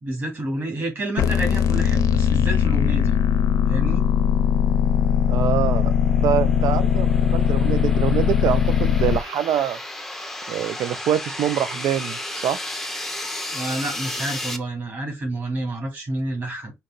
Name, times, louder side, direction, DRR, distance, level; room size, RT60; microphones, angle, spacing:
voice 1, 0.0-3.1 3.7-4.0 13.5-16.7, right 1 dB, 35° right, 2.6 m, -29 dB
sound 1, 1.2-9.2, left 8 dB, 80° left, 0.7 m, -20 dB
voice 2, 5.3-5.9 6.2-9.8 10.5-12.6, right 10 dB, 90° right, 0.4 m, -24 dB
sound 2, 5.6-14.6, left 1 dB, 5° left, 0.5 m, -34 dB
5.1 x 2.7 x 3.8 m
wide cardioid pair, 175°, 6 cm